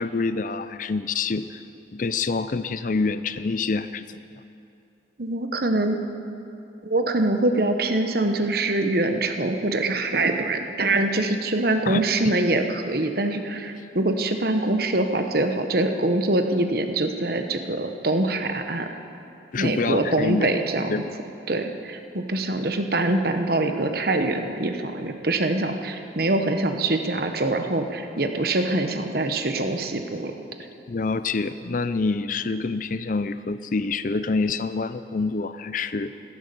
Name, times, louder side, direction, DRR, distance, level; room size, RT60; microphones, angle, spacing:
voice 1, 0.0-1.6 1.9-4.2 11.9-12.0 19.5-20.5 20.9-21.1 30.9-36.1, left 4 dB, 45° left, 13 dB, 0.5 m, -26 dB
voice 2, 5.2-6.0 6.8-18.9 19.6-21.0 21.5-30.3, right 2 dB, 55° right, 6 dB, 1.1 m, -24 dB
16.0 x 13.5 x 6.8 m, 2.7 s
head